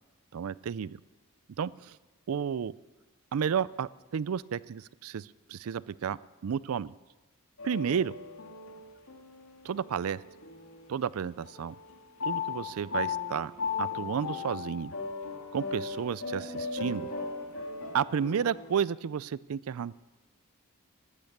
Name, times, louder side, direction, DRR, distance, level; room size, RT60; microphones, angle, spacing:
voice 1, 0.3-1.0 1.6-2.0 2.3-2.7 3.3-6.2 6.4-6.9 7.6-8.2 9.6-10.2 10.9-11.8 12.2-13.5 13.8-14.9 15.5-17.1 17.9-19.9, right 7 dB, 85° right, 20 dB, 0.4 m, -32 dB
sound 1, 7.6-11.1 11.4-18.7, left 5 dB, 75° left, 2.4 m, -37 dB
15.5 x 12.5 x 6.7 m, 1.1 s
head